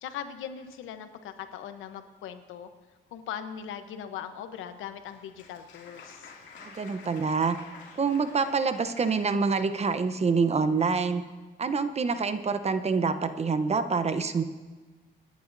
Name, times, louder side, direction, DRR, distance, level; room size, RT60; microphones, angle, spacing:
voice 1, 0.0-2.7 3.1-6.3, left 9 dB, 85° left, 9 dB, 0.9 m, -40 dB
Applause, 4.7-9.5, left 5 dB, 70° left, 2.4 m, -50 dB
voice 2, 6.6-7.6 7.9-11.2 11.6-14.4, right 4 dB, 35° right, 10 dB, 0.8 m, -26 dB
26.0 x 10.5 x 2.7 m, 1.3 s
cardioid pair, 90°, 20 cm